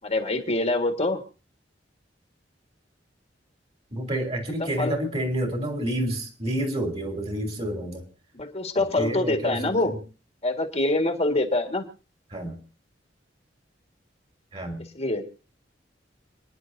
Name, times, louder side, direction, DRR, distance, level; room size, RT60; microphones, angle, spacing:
voice 1, 0.0-1.2 4.6-4.9 8.3-10.0 10.4-11.9 15.0-15.2, left 2 dB, 35° left, 5 dB, 1.8 m, -25 dB
voice 2, 3.9-8.0 9.0-10.0 12.3-12.6 14.5-14.8, right 1 dB, 35° right, 4 dB, 3.2 m, -29 dB
29.5 x 10.5 x 2.7 m, 0.36 s
head